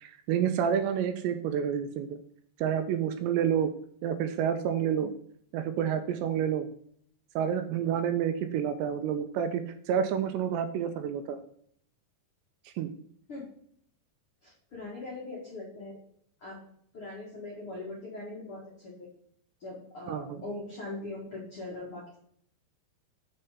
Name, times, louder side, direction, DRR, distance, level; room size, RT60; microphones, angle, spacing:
voice 1, 0.0-2.2 2.6-3.7 4.0-5.1 5.5-6.7 7.4-11.4 12.8-12.9 20.1-20.4, right 8 dB, 80° right, 8 dB, 2.6 m, -29 dB
voice 2, 14.4-16.0 16.4-16.6 16.9-19.1 19.6-22.0, left 2 dB, 65° left, -5 dB, 1.3 m, -41 dB
6.9 x 4.3 x 5.1 m, 0.64 s
omnidirectional pair, 5.3 m